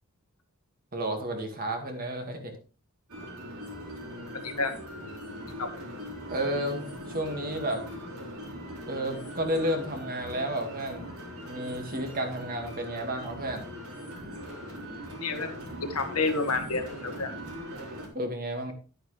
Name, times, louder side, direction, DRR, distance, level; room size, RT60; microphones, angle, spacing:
voice 1, 0.9-2.5 6.3-6.9 7.1-7.8 8.9-11.1 11.4-13.7 18.1-18.7, right 1 dB, 40° right, 4 dB, 2.2 m, -31 dB
sound 1, 3.1-18.1, equal, 70° right, 4.2 m, -41 dB
voice 2, 15.2-17.3, left 3 dB, 90° left, 6 dB, 1.8 m, -30 dB
11.5 x 9.0 x 3.4 m, 0.35 s
head